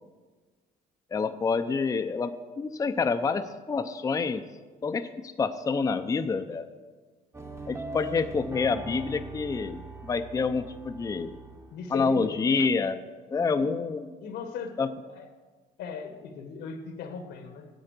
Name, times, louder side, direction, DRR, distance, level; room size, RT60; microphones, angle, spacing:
voice 1, 1.1-2.3 2.6-4.4 4.8-6.7 7.7-11.4 11.9-13.0 13.3-14.2 14.8-14.9, left 4 dB, 20° left, 9 dB, 0.5 m, -27 dB
sound 1, 7.3-11.8, right 3 dB, 15° right, 0.9 m, -41 dB
voice 2, 11.7-12.4 13.6-13.7 14.2-14.7 15.1-15.2 15.8-17.7, left 6 dB, 80° left, 7 dB, 1.5 m, -38 dB
9.9 x 7.8 x 6.6 m, 1.4 s
cardioid pair, 110°, 17 cm